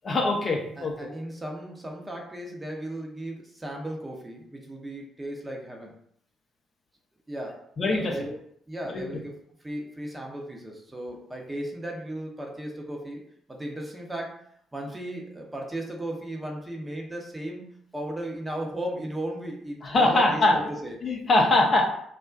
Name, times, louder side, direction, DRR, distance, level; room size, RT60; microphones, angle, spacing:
voice 1, 0.0-1.1 7.8-8.1 8.9-9.1 19.8-20.6 21.0-21.8, left 2 dB, 40° left, 0 dB, 0.5 m, -22 dB
voice 2, 0.8-5.9 7.3-7.7 7.9-8.3 8.7-9.3 9.6-13.2 13.5-14.4 14.7-21.0, right 1 dB, 20° right, 0 dB, 0.7 m, -36 dB
2.5 x 2.1 x 2.3 m, 0.69 s
figure-of-eight pair, 45°, 0 cm